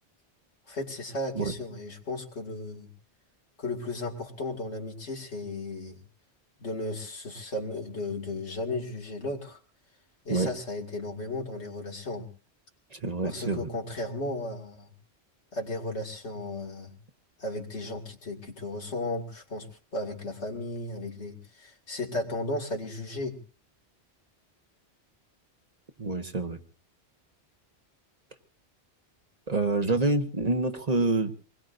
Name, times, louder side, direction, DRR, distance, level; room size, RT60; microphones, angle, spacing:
voice 1, 0.7-2.9 3.6-6.0 6.6-9.6 10.2-12.3 13.2-14.9 15.5-16.9 17.4-19.7 19.9-23.4, left 2 dB, 90° left, 1 dB, 2.6 m, -35 dB
voice 2, 12.9-13.7 26.0-26.6 29.5-31.4, right 3 dB, 40° right, 6 dB, 1.1 m, -27 dB
25.0 x 21.0 x 2.6 m, 0.36 s
omnidirectional pair, 1.1 m